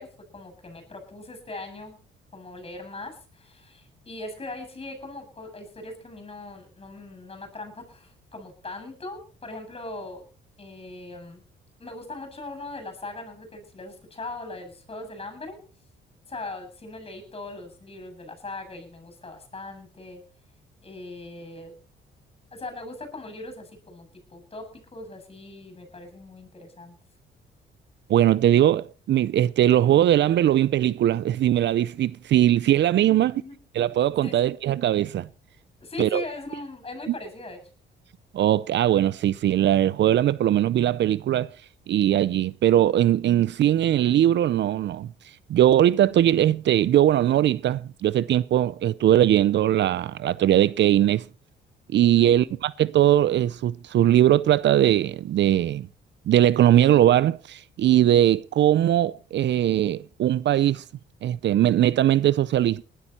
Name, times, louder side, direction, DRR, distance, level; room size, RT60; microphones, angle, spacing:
voice 1, 0.0-2.0 2.3-10.2 10.6-11.4 11.8-15.6 16.3-20.2 20.8-21.7 22.5-24.6 24.9-26.9 33.1-33.6 34.2-34.5 35.8-37.6 52.2-52.6, left 2 dB, 30° left, 7.7 m, -40 dB
voice 2, 28.1-33.3 33.7-35.3 36.0-36.2 38.3-41.5 41.9-45.1 45.5-51.2 51.9-55.9 56.3-60.8 61.2-62.8, right 12 dB, 65° right, 0.6 m, -20 dB
20.0 x 12.0 x 4.3 m
cardioid pair, 90°, 20 cm